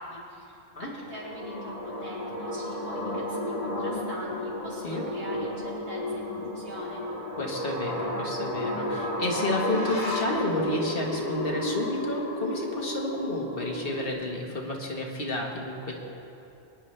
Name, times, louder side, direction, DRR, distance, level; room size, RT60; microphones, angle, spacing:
voice 1, 0.0-7.0, right 1 dB, 75° right, -7 dB, 3.5 m, -43 dB
sound 1, 1.0-14.1, left 1 dB, 35° left, 1.2 m, -32 dB
voice 2, 7.4-15.9, left 1 dB, 55° left, -1 dB, 1.7 m, -31 dB
22.0 x 10.0 x 3.3 m, 2.9 s
omnidirectional pair, 1.1 m